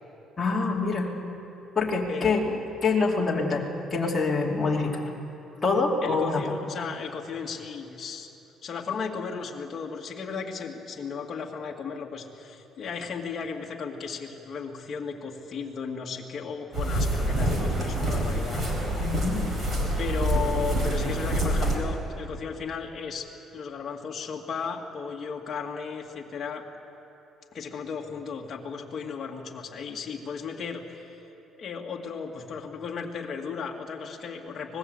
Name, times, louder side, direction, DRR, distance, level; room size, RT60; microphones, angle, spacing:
voice 1, 0.4-1.1 1.7-2.5 2.8-5.1 5.6-6.4 19.0-19.5, left 4 dB, 15° left, -3 dB, 2.8 m, -25 dB
voice 2, 2.1-2.7 6.0-8.3 8.6-18.6 20.0-26.6 27.5-31.1 31.6-34.8, left 5 dB, 35° left, 0 dB, 2.2 m, -35 dB
sound 1, 16.7-21.8, right 1 dB, 30° right, 4.5 m, -26 dB
25.0 x 20.0 x 8.0 m, 3.0 s
cardioid pair, 160°, 0 cm